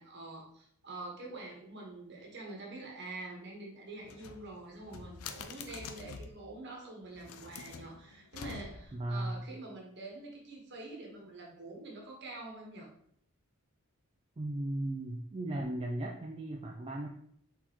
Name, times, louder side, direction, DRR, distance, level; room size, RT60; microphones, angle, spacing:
voice 1, 0.0-12.9, right 2 dB, 50° right, -1 dB, 1.2 m, -46 dB
sound 1, 4.0-6.4 7.1-9.0, left 5 dB, 70° left, 0.4 m, -46 dB
voice 2, 8.9-9.3 14.4-17.1, right 1 dB, 25° right, 0 dB, 0.3 m, -36 dB
4.2 x 4.1 x 2.9 m, 0.68 s
head